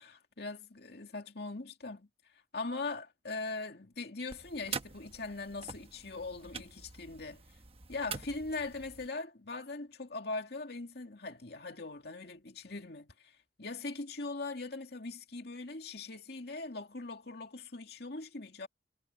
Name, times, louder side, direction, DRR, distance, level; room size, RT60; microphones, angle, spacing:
voice 1, 0.0-2.1 2.5-7.4 7.9-18.7, left 3 dB, 60° left, 2.3 m, -41 dB
sound 1, 4.3-9.1, right 6 dB, 35° right, 1.1 m, -45 dB
head